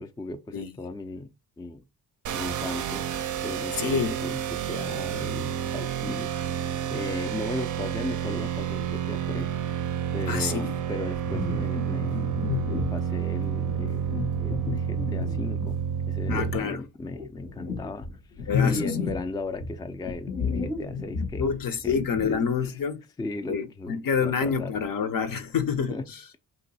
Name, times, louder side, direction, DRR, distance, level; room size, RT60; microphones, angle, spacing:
voice 1, 0.0-1.8 2.3-9.5 10.1-12.2 12.6-18.1 18.4-21.5 21.8-22.4 23.2-24.8 25.9-26.4, left 2 dB, 10° left, 0.4 m, -37 dB
sound 1, 2.3-16.6, right 9 dB, 45° right, 0.5 m, -30 dB
voice 2, 3.8-4.1 10.3-10.8 16.3-16.8 18.5-19.1 21.4-23.0 23.5-26.0, left 6 dB, 55° left, 0.7 m, -27 dB
sound 2, 11.1-13.1 13.7-15.7 16.3-16.6 17.1-19.3 19.6-22.4, left 5 dB, 80° left, 1.4 m, -32 dB
2.8 x 2.6 x 4.0 m
supercardioid pair, 55°, 41 cm